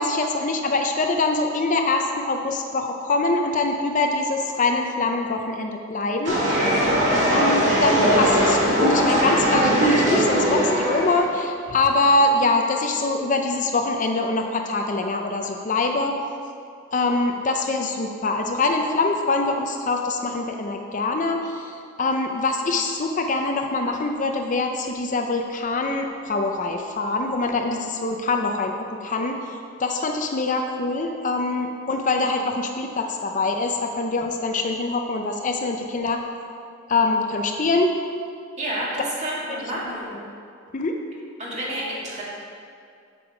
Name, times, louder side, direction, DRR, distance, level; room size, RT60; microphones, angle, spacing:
voice 1, 0.0-6.4 7.3-16.2 16.9-29.4 29.8-36.2 36.9-38.0 39.8-39.9 40.3-40.4 40.7-41.0, left 3 dB, 40° left, 3 dB, 0.5 m, -24 dB
sound 1, 6.3-11.2, equal, 60° right, 2.4 m, -20 dB
voice 2, 38.6-40.1 41.4-42.2, right 1 dB, 35° right, -6 dB, 2.2 m, -30 dB
8.1 x 6.9 x 4.9 m, 2.4 s
head